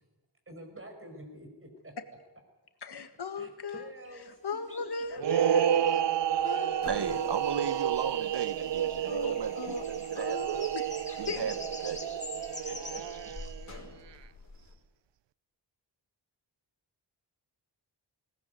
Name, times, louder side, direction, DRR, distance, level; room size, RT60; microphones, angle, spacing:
voice 1, 0.5-2.0 3.4-4.8 8.8-9.4 11.3-11.6 12.0-12.1 12.7-13.0, right 1 dB, 30° right, 5 dB, 5.4 m, -48 dB
voice 2, 2.8-3.9 4.3-5.8 6.4-7.4 9.1-9.9 10.2-11.5 11.8-12.0, left 4 dB, 65° left, 9 dB, 1.8 m, -38 dB
sound 1, 4.0-4.1 4.7-13.5, left 2 dB, 15° left, 3.2 m, -47 dB
sound 2, 5.2-13.8, right 10 dB, 85° right, 0.7 m, -30 dB
sound 3, 6.7-14.8, left 2 dB, 40° left, 5.1 m, -50 dB
voice 3, 6.9-10.4 11.2-11.6 11.8-12.0, right 7 dB, 70° right, 12 dB, 1.0 m, -36 dB
20.5 x 19.0 x 9.4 m, 1.1 s
wide cardioid pair, 125°, 42 cm